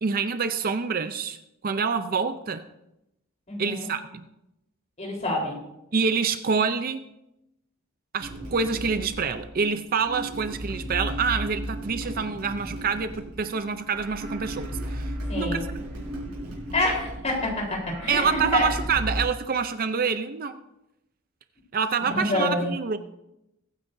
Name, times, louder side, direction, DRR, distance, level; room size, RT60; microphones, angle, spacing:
voice 1, 0.0-1.4 1.6-2.7 3.6-4.2 5.9-7.1 8.1-15.6 18.1-20.6 21.7-23.0, right 5 dB, 40° right, 10 dB, 0.5 m, -27 dB
voice 2, 3.5-3.9 5.0-5.6 15.3-15.6 16.7-18.7 22.0-22.7, left 2 dB, 30° left, -1 dB, 3.9 m, -27 dB
sound 1, 8.2-19.2, equal, 90° right, 5.4 m, -35 dB
21.5 x 9.3 x 2.7 m, 0.88 s
head